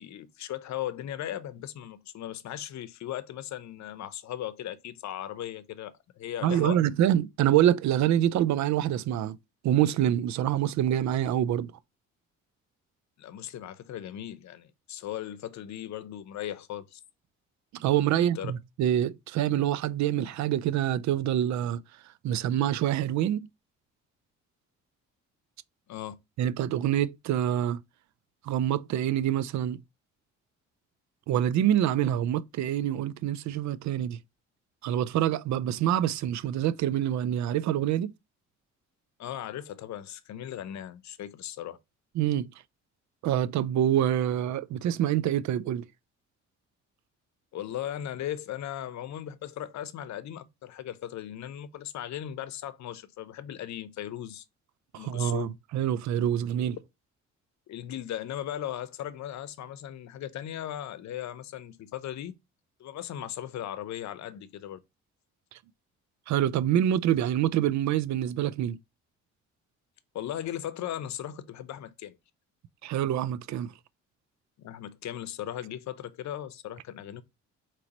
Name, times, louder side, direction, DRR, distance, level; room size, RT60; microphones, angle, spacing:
voice 1, 0.0-6.8 13.2-17.0 18.1-18.5 25.9-26.1 39.2-41.8 47.5-54.4 54.9-55.5 57.7-62.3 62.8-64.8 70.1-72.2 74.6-77.2, left 11 dB, 65° left, 0.7 m, -37 dB
voice 2, 6.4-9.4 9.6-11.7 17.7-21.8 22.2-23.5 26.4-27.8 28.4-29.8 31.3-34.2 34.8-38.1 42.2-42.5 43.2-45.9 54.9-56.8 66.3-68.8 72.8-73.7, right 11 dB, 70° right, 0.4 m, -26 dB
5.0 x 3.0 x 2.9 m
cardioid pair, 90°, 30 cm